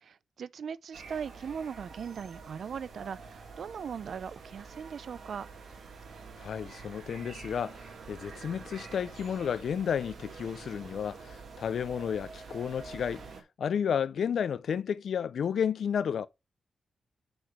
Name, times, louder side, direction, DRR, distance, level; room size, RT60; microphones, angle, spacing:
voice 1, 0.0-5.5, right 7 dB, 60° right, 0.4 m, -39 dB
sound 1, 0.9-13.4, right 4 dB, 80° right, 2.6 m, -47 dB
voice 2, 6.4-13.3 13.6-16.3, left 7 dB, 70° left, 0.5 m, -32 dB
6.2 x 4.9 x 5.8 m
wide cardioid pair, 175°, 0 cm